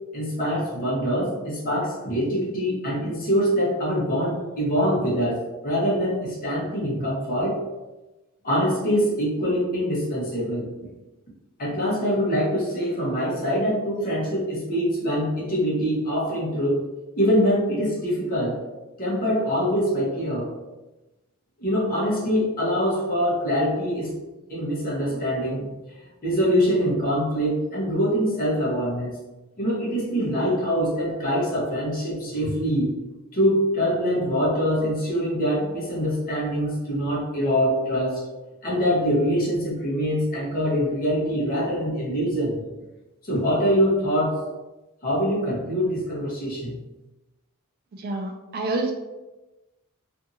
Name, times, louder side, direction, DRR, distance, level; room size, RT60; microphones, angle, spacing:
voice 1, 0.1-7.5 8.4-10.7 11.6-16.9 17.2-18.6 19.0-20.5 21.6-24.1 24.5-25.7 25.9-29.2 29.6-32.9 33.3-38.2 38.6-42.6 43.2-44.4 45.0-46.8, equal, 40° left, -5 dB, 1.0 m, -24 dB
voice 2, 48.0-48.9, right 2 dB, 45° right, 3 dB, 0.3 m, -27 dB
2.6 x 2.6 x 2.5 m, 1.1 s
head